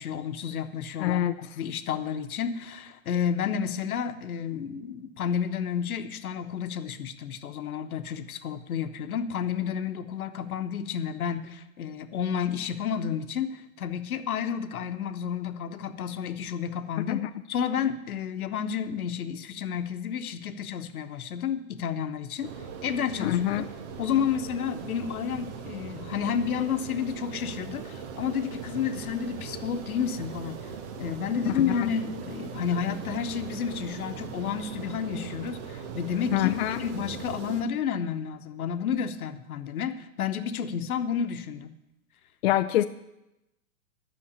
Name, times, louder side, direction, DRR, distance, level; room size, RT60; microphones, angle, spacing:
voice 1, 0.0-17.2 17.5-22.5 22.8-23.4 24.0-30.7 31.0-41.8, left 7 dB, 75° left, 9 dB, 1.1 m, -31 dB
voice 2, 1.0-1.3 17.1-17.3 23.2-23.7 31.4-31.9 36.3-36.8 42.4-42.9, left 13 dB, 45° left, 8 dB, 0.5 m, -25 dB
sound 1, 22.4-37.6, right 6 dB, 50° right, 1.4 m, -40 dB
10.5 x 6.4 x 8.2 m, 0.92 s
hypercardioid pair, 125°, 44 cm